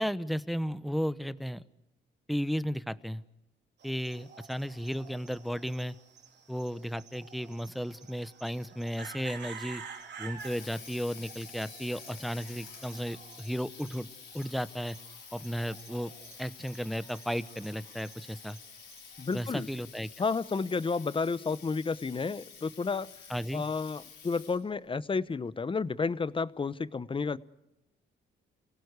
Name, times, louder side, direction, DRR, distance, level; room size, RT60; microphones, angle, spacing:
voice 1, 0.0-1.6 2.3-3.2 3.8-6.0 6.5-9.8 10.2-14.1 14.3-15.0 15.3-16.1 16.4-18.6 19.3-20.1 23.3-23.6, equal, ahead, 15 dB, 0.9 m, -34 dB
sound 1, 3.8-19.4, right 6 dB, 60° right, 3.6 m, -50 dB
Water tap faucet, 10.1-24.8, left 6 dB, 65° left, 4.5 m, -50 dB
voice 2, 19.2-19.7 20.2-23.1 23.5-27.4, left 4 dB, 25° left, 16 dB, 0.9 m, -31 dB
29.0 x 17.5 x 8.2 m, 0.93 s
cardioid pair, 90°, 20 cm